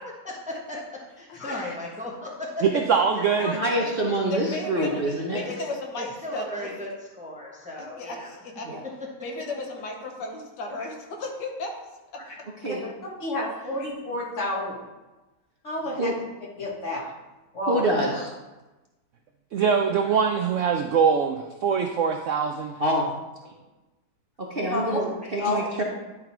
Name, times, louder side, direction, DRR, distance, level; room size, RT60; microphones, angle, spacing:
voice 1, 0.2-0.8 1.2-2.6 5.4-5.7 6.0-6.9 7.2-8.3 13.6-13.7 18.0-18.2 25.2-25.3, left 1 dB, 5° right, -2 dB, 1.0 m, -36 dB
voice 2, 1.3-1.8 2.7-2.8 3.2-3.6 4.3-5.0 5.3-6.7 8.0-8.7 9.2-11.7 12.1-12.2 19.7-20.2, left 3 dB, 80° left, 1 dB, 1.8 m, -35 dB
voice 3, 2.6-3.6 19.5-22.8, right 6 dB, 70° right, 4 dB, 0.7 m, -23 dB
voice 4, 3.1-5.4 8.6-8.8 12.6-12.8 16.0-16.1 17.7-18.3 22.8-23.1 23.4-23.5 24.4-25.8, right 1 dB, 40° right, -2 dB, 0.9 m, -26 dB
voice 5, 13.2-14.9 15.6-16.1 16.6-17.1 17.5-17.8 24.6-25.0 25.4-25.6, left 1 dB, 45° left, -5 dB, 2.1 m, -29 dB
11.0 x 3.9 x 4.5 m, 1.1 s
omnidirectional pair, 1.9 m